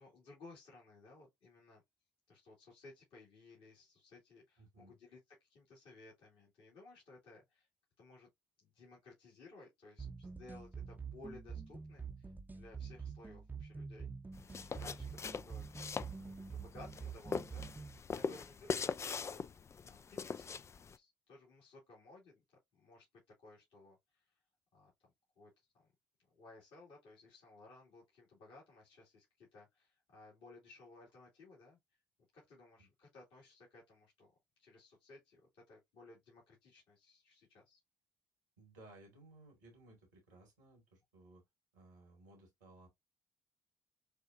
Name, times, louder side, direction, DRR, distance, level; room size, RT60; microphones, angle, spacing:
voice 1, 0.0-1.8 2.3-7.7 8.0-8.3 8.6-14.1 14.5-15.9 16.3-19.5 19.9-22.4 22.8-23.0 23.4-24.3 24.7-25.5 25.8-25.9 26.3-31.8 32.3-34.3 34.6-37.8, left 2 dB, 65° left, 2.3 m, -59 dB
voice 2, 4.6-5.0 18.1-18.4 32.8-32.9 38.6-41.4 41.7-42.9, right 2 dB, 90° right, 2.2 m, -60 dB
sound 1, 10.0-18.0, right 5 dB, 20° right, 0.7 m, -47 dB
sound 2, 14.3-21.0, left 5 dB, 30° left, 0.4 m, -42 dB
6.7 x 2.4 x 2.6 m
hypercardioid pair, 55°, 9 cm